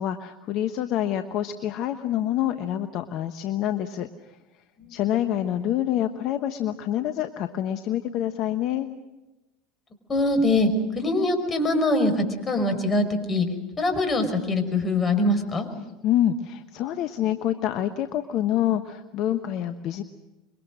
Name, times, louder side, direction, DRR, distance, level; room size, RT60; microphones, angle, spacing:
voice 1, 0.0-4.4 4.9-8.9 16.0-20.0, left 11 dB, 55° left, 9 dB, 1.2 m, -27 dB
voice 2, 10.1-10.7 11.0-13.5 13.8-15.7, left 2 dB, 30° left, 7 dB, 5.5 m, -23 dB
27.0 x 23.5 x 6.3 m, 1.0 s
hypercardioid pair, 80°, 0 cm